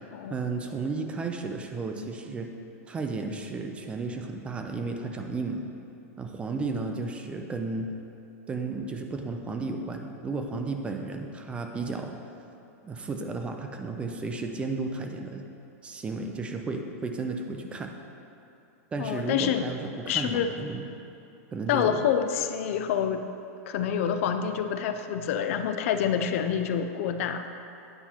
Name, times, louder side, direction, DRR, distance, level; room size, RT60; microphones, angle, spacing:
voice 1, 0.3-2.5 2.9-5.7 6.2-7.9 8.5-12.1 12.8-15.4 15.8-17.9 18.9-20.8 21.5-22.0, right 3 dB, 15° right, 4 dB, 0.4 m, -33 dB
voice 2, 19.0-19.7 20.1-20.5 21.7-23.2 23.7-27.5, left 8 dB, 55° left, 8 dB, 0.4 m, -27 dB
9.0 x 4.4 x 4.4 m, 2.7 s
supercardioid pair, 150°, 8 cm